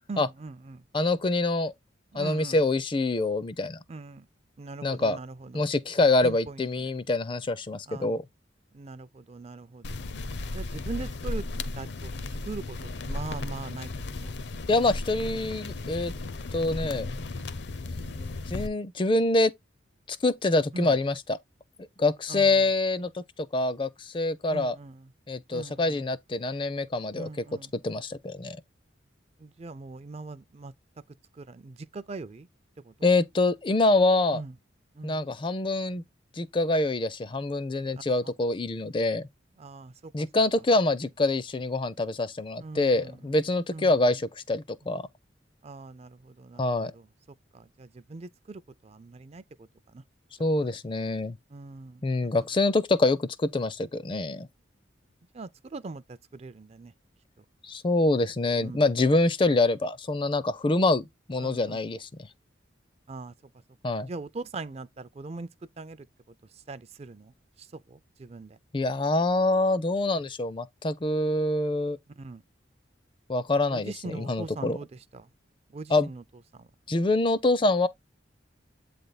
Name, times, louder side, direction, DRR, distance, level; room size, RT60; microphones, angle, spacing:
voice 1, 0.1-0.8 2.1-2.6 3.9-4.3 4.6-5.7 6.2-6.6 7.9-8.2 8.7-10.1 10.5-11.5 11.8-12.1 12.4-13.9 14.2-14.3 18.0-18.3 20.7-21.0 22.3-22.7 24.5-25.1 25.5-26.0 27.2-27.7 29.4-30.7 31.3-32.5 32.8-33.1 34.3-34.5 35.0-35.2 39.6-40.3 42.6-43.2 43.7-44.0 45.6-47.1 47.5-50.0 50.6-50.7 51.5-52.3 55.3-56.9 58.6-58.8 61.4-61.8 63.1-63.3 64.0-65.5 65.8-66.1 66.5-68.6 72.2-72.4 73.7-75.3 75.7-76.2 76.5-76.7, right 3 dB, 35° right, 0.4 m, -41 dB
voice 2, 0.9-1.7 2.1-3.8 4.8-5.2 5.5-8.2 14.7-16.1 16.5-17.1 18.5-19.5 20.1-21.4 22.0-23.2 23.5-24.8 25.3-27.3 27.8-28.6 33.0-34.4 35.0-36.0 36.4-39.3 40.1-45.0 46.6-46.9 50.4-51.4 52.0-54.5 57.6-62.3 63.8-64.1 68.7-72.0 73.3-74.8 75.9-76.1 76.9-77.9, left 2 dB, 25° left, 0.4 m, -25 dB
sound 1, 9.8-18.7, left 2 dB, 65° left, 0.7 m, -35 dB
8.3 x 3.4 x 4.0 m
head